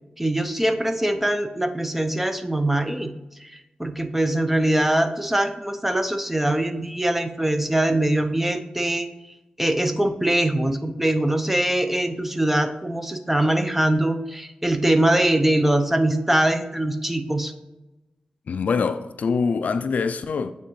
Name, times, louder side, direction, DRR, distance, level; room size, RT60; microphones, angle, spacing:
voice 1, 0.2-3.1 3.4-9.1 9.6-17.5, right 1 dB, 10° right, 0.6 m, -22 dB
voice 2, 18.5-20.5, left 5 dB, 75° left, 0.3 m, -24 dB
8.7 x 3.5 x 3.1 m
cardioid pair, 60°, 3 cm